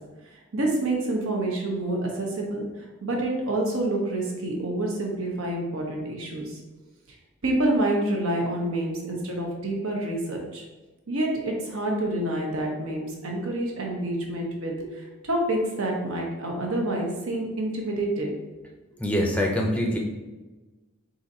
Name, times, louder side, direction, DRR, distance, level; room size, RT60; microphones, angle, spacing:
voice 1, 0.2-6.6 7.1-7.2 7.4-10.6 11.1-18.3, right 1 dB, 75° right, 0 dB, 0.9 m, -28 dB
voice 2, 19.0-20.0, equal, 5° left, 0 dB, 0.5 m, -24 dB
4.0 x 2.6 x 4.0 m, 1.2 s
head